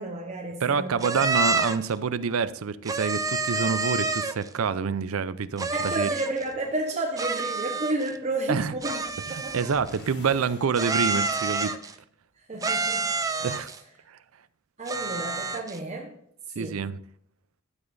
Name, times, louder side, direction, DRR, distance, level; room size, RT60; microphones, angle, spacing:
voice 1, 0.0-1.2 5.7-9.0 9.3-9.7 12.4-13.1 13.5-13.7 14.8-16.1 16.6-16.8, right 2 dB, 35° right, 1.1 m, -32 dB
voice 2, 0.6-6.1 8.5-8.7 9.5-11.8 13.4-13.7 14.1-14.2 16.6-17.0, right 6 dB, 80° right, 0.5 m, -27 dB
sound 1, 1.0-1.9 2.9-4.5 5.6-6.4 7.2-8.2 8.8-10.0 10.8-11.9 12.6-13.8 14.9-15.8, right 3 dB, 15° right, 0.5 m, -28 dB
sound 2, 8.7-11.4, left 2 dB, 55° left, 1.7 m, -50 dB
12.5 x 8.1 x 2.6 m
head